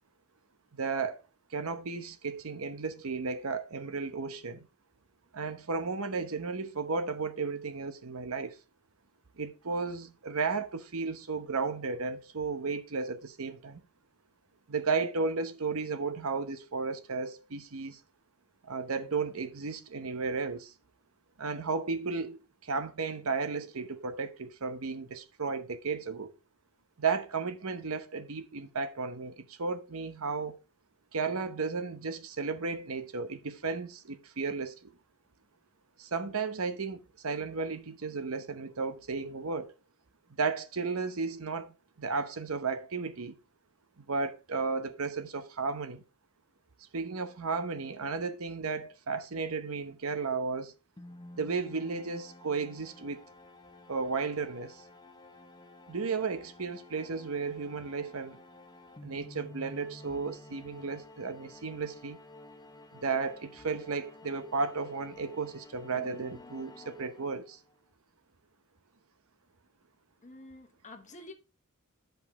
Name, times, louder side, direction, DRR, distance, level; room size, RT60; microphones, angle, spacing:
voice 1, 0.7-1.2 1.5-4.7 5.3-8.6 9.4-13.8 14.7-18.0 18.6-20.7 21.4-26.3 27.0-30.6 31.1-34.9 36.0-39.7 40.4-43.4 44.0-46.0 46.9-50.7 51.4-53.2 53.9-54.8 55.9-58.4 59.0-62.2 62.9-67.6, right 4 dB, 70° right, 0.9 m, -34 dB
sound 1, 51.0-67.7, left 2 dB, 20° left, 0.9 m, -52 dB
voice 2, 70.2-71.3, left 2 dB, 35° left, 1.2 m, -48 dB
10.5 x 5.4 x 3.6 m
head